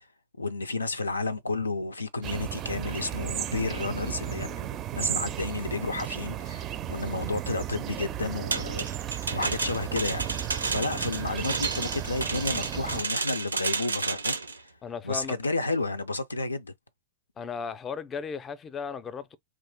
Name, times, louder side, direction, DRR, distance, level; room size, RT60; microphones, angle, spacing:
voice 1, 0.4-4.6 4.9-10.3 10.7-14.7 15.0-16.7, left 3 dB, 85° left, 0.4 m, -31 dB
sound 1, 2.2-13.0, right 11 dB, 35° right, 0.4 m, -34 dB
sound 2, 8.5-14.6, right 4 dB, 85° right, 0.5 m, -31 dB
voice 2, 14.8-15.4 17.4-19.4, left 6 dB, 25° left, 0.5 m, -35 dB
3.1 x 2.4 x 3.5 m
figure-of-eight pair, 100°, 0 cm